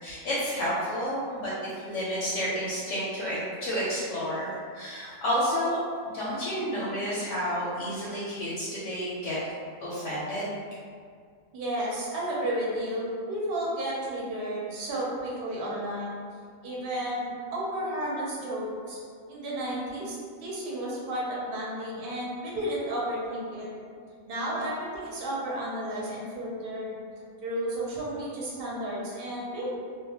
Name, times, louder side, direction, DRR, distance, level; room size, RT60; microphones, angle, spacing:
voice 1, 0.0-1.5 1.8-5.8 6.1-9.4 9.8-10.5, equal, 70° left, -8 dB, 0.9 m, -30 dB
voice 2, 11.5-16.1 16.6-19.0 19.3-23.7 24.3-27.0 27.4-29.8, right 1 dB, 55° right, -5 dB, 0.7 m, -32 dB
2.2 x 2.2 x 2.7 m, 2.1 s
omnidirectional pair, 1.4 m